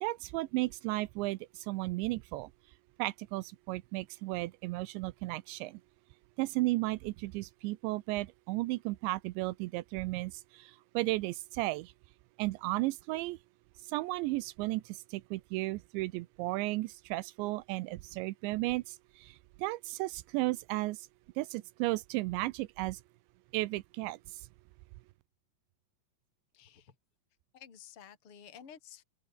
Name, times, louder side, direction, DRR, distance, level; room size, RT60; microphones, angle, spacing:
voice 1, 0.0-2.5 3.0-5.8 6.4-11.9 12.4-13.4 13.9-21.1 21.4-23.0 23.5-24.4, right 20 dB, 80° right, 2.7 m, -34 dB
voice 2, 26.5-27.0 27.5-29.0, left 8 dB, 30° left, 3.7 m, -52 dB
omnidirectional pair, 5.7 m